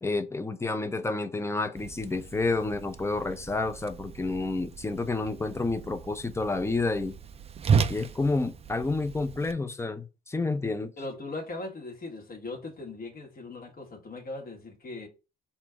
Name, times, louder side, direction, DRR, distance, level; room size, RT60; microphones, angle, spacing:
voice 1, 0.0-7.2 7.9-10.9, left 3 dB, 15° left, 0.6 m, -29 dB
Whoosh swoosh swish, 1.8-9.5, right 6 dB, 30° right, 0.4 m, -34 dB
voice 2, 11.0-15.1, left 2 dB, 45° left, 1.5 m, -39 dB
4.3 x 2.5 x 4.5 m
cardioid pair, 90°, 20 cm